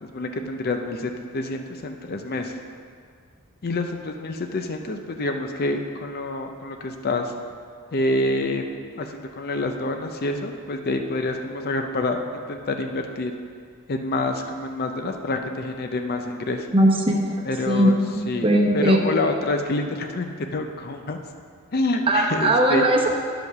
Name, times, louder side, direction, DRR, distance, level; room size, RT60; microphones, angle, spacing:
voice 1, 0.0-2.6 3.6-7.3 7.9-8.7 9.0-13.3 13.9-16.7 17.5-18.0 18.3-18.5 18.7-21.2 21.7-22.8, left 2 dB, 45° left, 5 dB, 0.6 m, -27 dB
voice 2, 16.7-19.1 22.1-23.1, right 1 dB, 25° right, 0 dB, 0.9 m, -20 dB
9.6 x 5.0 x 5.8 m, 2.1 s
head